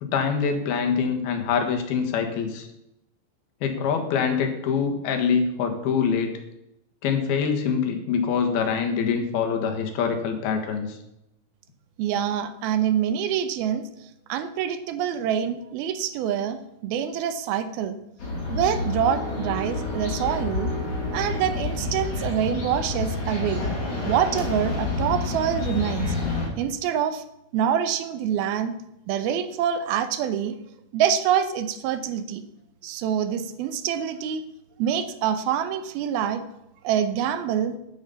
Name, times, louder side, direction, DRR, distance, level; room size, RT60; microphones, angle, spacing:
voice 1, 0.0-2.7 3.6-6.3 7.0-11.0, left 6 dB, 80° left, 4 dB, 3.5 m, -24 dB
voice 2, 12.0-13.9 14.3-18.0 18.5-20.7 21.1-23.7 24.1-26.2 26.6-27.2 27.5-28.7 29.1-30.6 30.9-32.4 32.8-34.4 34.8-36.4 36.8-37.8, right 9 dB, 80° right, 11 dB, 2.8 m, -26 dB
sound 1, 18.2-26.5, left 2 dB, 50° left, 4.3 m, -29 dB
10.5 x 9.2 x 7.0 m, 0.84 s
omnidirectional pair, 4.3 m